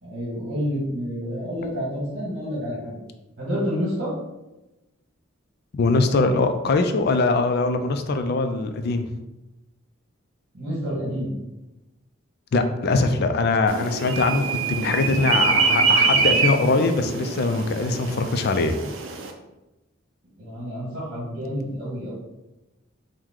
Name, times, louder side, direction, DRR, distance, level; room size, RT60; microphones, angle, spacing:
voice 1, 0.0-3.0 3.4-4.1 10.5-11.3 20.4-22.1, equal, 55° right, -7 dB, 1.4 m, -29 dB
voice 2, 5.7-9.1 12.5-18.8, left 3 dB, 50° left, 7 dB, 0.4 m, -22 dB
sound 1, 13.7-19.3, right 4 dB, 75° right, 0.5 m, -24 dB
4.6 x 2.1 x 3.7 m, 1.0 s
head